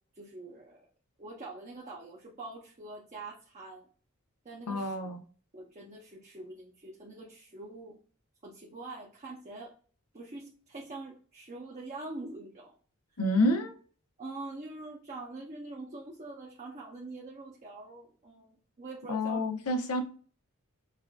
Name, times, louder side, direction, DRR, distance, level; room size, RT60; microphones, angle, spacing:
voice 1, 0.1-0.8 1.2-3.9 4.4-5.0 5.5-8.0 8.4-9.7 10.1-12.7 14.2-19.4, right 2 dB, 30° right, 0.7 m, -44 dB
voice 2, 4.7-5.2 13.2-13.7 19.1-20.0, left 1 dB, 85° left, 0.7 m, -28 dB
5.7 x 2.5 x 2.3 m
head